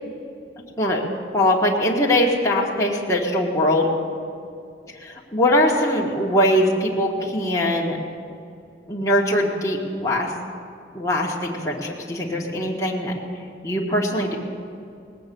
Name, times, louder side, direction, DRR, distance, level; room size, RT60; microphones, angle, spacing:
voice 1, 0.8-3.9 5.0-8.0 8.9-10.3 10.9-13.1 13.6-14.4, left 1 dB, 15° left, -4 dB, 1.6 m, -21 dB
19.5 x 8.5 x 6.8 m, 2.5 s
head